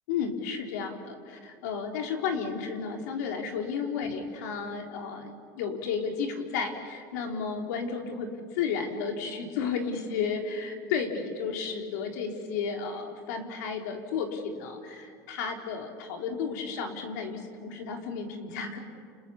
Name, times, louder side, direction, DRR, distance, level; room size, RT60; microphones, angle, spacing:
voice 1, 0.1-18.8, left 6 dB, 75° left, 3 dB, 3.8 m, -33 dB
30.0 x 28.0 x 7.1 m, 2.2 s
supercardioid pair, 110°, 9 cm